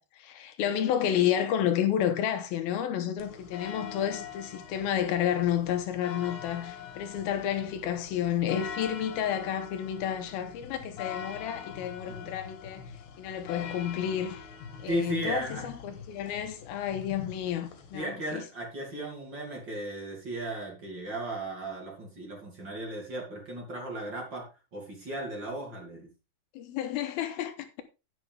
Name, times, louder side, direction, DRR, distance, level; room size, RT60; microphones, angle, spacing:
voice 1, 0.0-12.9 13.2-14.5 14.8-18.4 26.6-27.8, left 10 dB, 80° left, 2.8 m, -30 dB
sound 1, 3.2-18.0, left 7 dB, 65° left, 3.2 m, -44 dB
voice 2, 14.8-15.6 17.9-26.1, right 1 dB, 30° right, 2.9 m, -36 dB
10.5 x 9.3 x 3.6 m
omnidirectional pair, 4.5 m